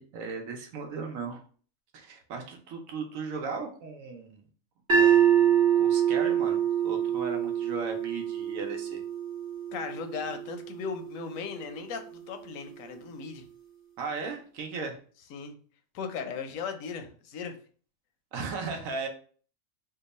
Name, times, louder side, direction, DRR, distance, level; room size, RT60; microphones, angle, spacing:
voice 1, 0.0-1.4 1.9-4.4 4.9-9.0 14.0-15.0 18.3-19.1, right 4 dB, 90° right, 2 dB, 1.1 m, -37 dB
sound 1, 4.9-11.1, right 9 dB, 60° right, 0.9 m, -25 dB
voice 2, 9.7-13.4 15.3-15.5 15.9-17.5, left 5 dB, 85° left, 6 dB, 1.0 m, -37 dB
2.9 x 2.2 x 4.0 m, 0.43 s
omnidirectional pair, 1.4 m